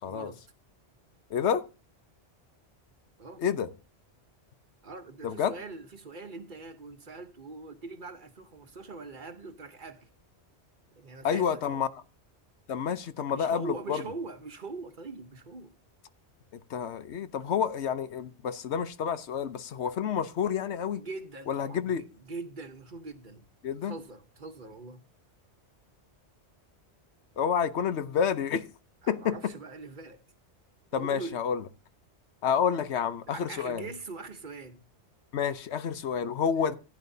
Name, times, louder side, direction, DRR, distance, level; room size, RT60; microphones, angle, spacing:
voice 1, 0.0-0.4 3.2-3.4 4.8-10.1 11.0-11.9 13.3-15.7 21.0-23.5 23.8-25.0 29.0-30.2 30.9-31.4 33.3-34.8 36.6-36.7, right 3 dB, 50° right, 1.1 m, -42 dB
voice 2, 1.3-1.6 3.4-3.7 5.2-5.5 11.2-11.9 12.7-14.0 16.5-21.0 21.5-22.0 23.6-23.9 27.4-28.6 29.1-29.5 30.9-31.6 32.4-33.9 35.3-36.7, left 7 dB, 80° left, 1.1 m, -29 dB
15.0 x 10.5 x 2.7 m
omnidirectional pair, 1.1 m